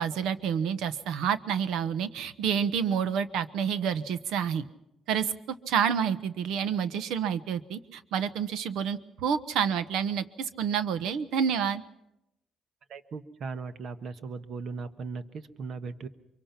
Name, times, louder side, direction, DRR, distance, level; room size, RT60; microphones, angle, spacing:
voice 1, 0.0-4.6 5.1-11.8, right 7 dB, 85° right, 15 dB, 1.1 m, -29 dB
voice 2, 12.9-16.1, right 4 dB, 65° right, 11 dB, 1.4 m, -38 dB
24.0 x 23.5 x 6.0 m, 0.87 s
cardioid pair, 90°, 0 cm